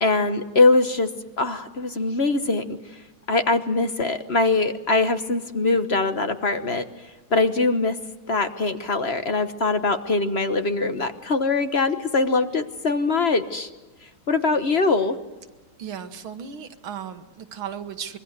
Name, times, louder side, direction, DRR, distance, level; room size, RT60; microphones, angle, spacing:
voice 1, 0.0-1.1 1.4-2.6 3.3-6.8 7.3-8.0 8.3-13.7 14.3-15.2, left 3 dB, 40° left, 9 dB, 1.1 m, -22 dB
voice 2, 15.8-18.2, right 8 dB, 80° right, 8 dB, 2.1 m, -35 dB
25.0 x 23.0 x 8.1 m, 1.1 s
omnidirectional pair, 2.2 m